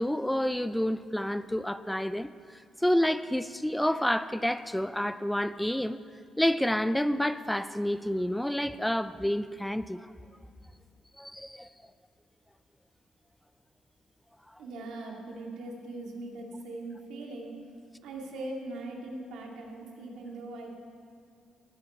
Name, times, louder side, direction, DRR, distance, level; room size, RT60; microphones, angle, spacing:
voice 1, 0.0-6.0 6.4-10.1 11.2-11.7 14.5-14.6, equal, 5° left, 13 dB, 0.4 m, -29 dB
voice 2, 14.6-17.5 18.0-20.7, right 2 dB, 85° right, 0 dB, 2.1 m, -40 dB
18.0 x 9.8 x 4.3 m, 2.3 s
cardioid pair, 90°, 0 cm